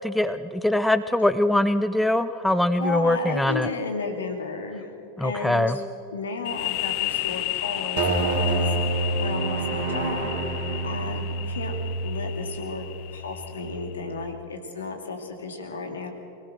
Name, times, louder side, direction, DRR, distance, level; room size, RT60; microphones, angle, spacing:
voice 1, 0.0-3.7 5.2-5.8, left 1 dB, 5° left, 12 dB, 0.5 m, -22 dB
voice 2, 2.7-4.9 5.2-5.8 6.1-8.7 9.2-10.3 10.8-12.9 13.1-16.1, left 4 dB, 70° left, 3 dB, 2.6 m, -33 dB
sound 1, 6.4-13.9, left 17 dB, 45° left, 0.8 m, -33 dB
sound 2, 8.0-14.4, right 2 dB, 50° right, 2.8 m, -28 dB
24.0 x 18.0 x 6.2 m, 2.6 s
figure-of-eight pair, 90°, 0 cm